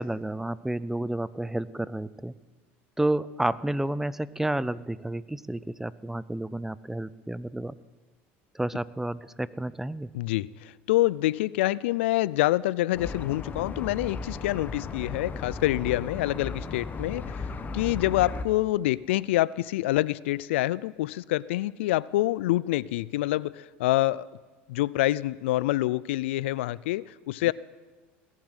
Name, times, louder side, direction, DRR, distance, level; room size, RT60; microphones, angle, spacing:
voice 1, 0.0-2.3 3.0-7.7 8.5-10.1, right 1 dB, 5° right, 18 dB, 0.5 m, -30 dB
voice 2, 10.1-17.5 17.7-24.3 24.7-27.5, left 16 dB, 80° left, 21 dB, 0.4 m, -26 dB
sound 1, 12.9-18.4, left 4 dB, 30° left, 1.2 m, -36 dB
19.0 x 7.3 x 9.7 m, 1.3 s
hypercardioid pair, 90°, 6 cm